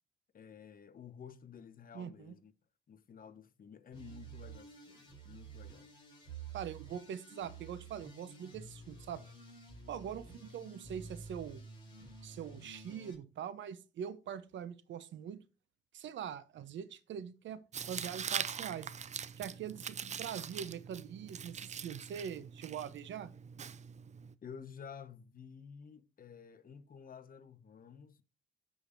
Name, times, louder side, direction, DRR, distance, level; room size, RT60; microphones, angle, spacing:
voice 1, 0.3-2.5 2.9-5.9 24.4-28.2, left 7 dB, 45° left, 1.0 m, -52 dB
voice 2, 1.9-2.3 6.5-9.2 9.9-11.6 12.2-15.4 15.9-17.6 17.9-18.9 19.4-23.3, right 8 dB, 70° right, 0.9 m, -43 dB
sound 1, 3.9-13.1, right 4 dB, 25° left, 4.9 m, -51 dB
Tearing, 17.7-24.3, right 7 dB, 35° right, 0.5 m, -42 dB
15.0 x 5.1 x 2.7 m
cardioid pair, 90°, 20 cm